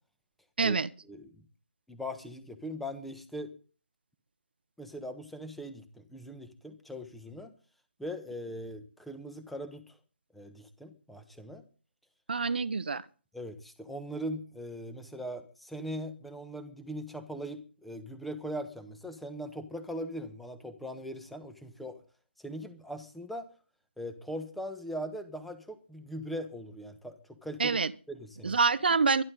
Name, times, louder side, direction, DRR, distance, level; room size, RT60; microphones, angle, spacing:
voice 1, 0.6-0.9 12.3-13.0 27.6-27.9 28.4-29.2, right 4 dB, 55° right, 1.0 m, -26 dB
voice 2, 1.9-3.5 4.8-7.5 8.0-10.0 10.3-11.6 13.3-22.0 22.4-23.5 24.0-27.8 28.1-28.6, equal, ahead, 1.2 m, -40 dB
23.5 x 11.0 x 3.9 m
figure-of-eight pair, 145°, 6 cm